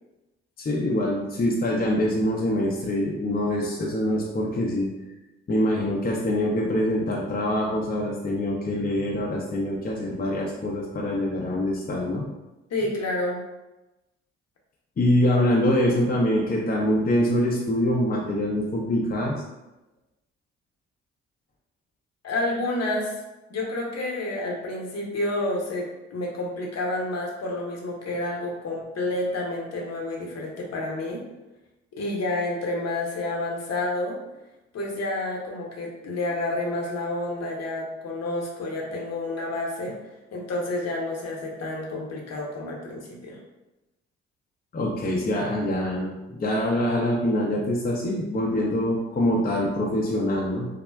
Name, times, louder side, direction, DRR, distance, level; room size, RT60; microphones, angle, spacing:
voice 1, 0.6-4.9 5.5-12.3 15.0-19.4 44.7-50.7, left 1 dB, 25° left, -2 dB, 0.5 m, -24 dB
voice 2, 12.7-13.4 22.2-23.1 23.5-31.2 31.9-34.2 34.7-40.0 40.3-43.4, left 2 dB, 50° left, -1 dB, 0.8 m, -29 dB
3.4 x 2.0 x 2.3 m, 1.0 s
hypercardioid pair, 45°, 34 cm